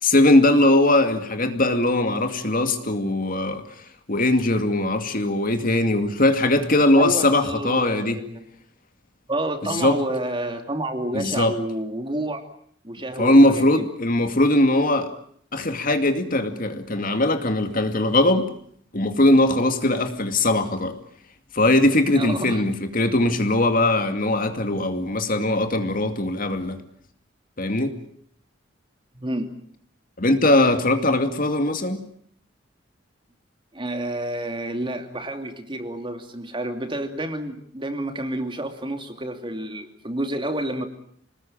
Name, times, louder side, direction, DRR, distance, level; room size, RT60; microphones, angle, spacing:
voice 1, 0.0-3.6 4.1-8.2 9.6-10.0 11.1-11.5 13.2-15.1 15.5-18.5 18.9-20.9 21.5-26.8 27.6-28.0 30.2-32.0, left 1 dB, 45° left, 7 dB, 2.4 m, -20 dB
voice 2, 7.0-8.5 9.3-12.4 12.8-13.9 22.1-22.6 29.1-29.5 33.7-40.9, right 1 dB, 25° right, 6 dB, 2.9 m, -29 dB
27.5 x 20.0 x 8.9 m, 0.64 s
head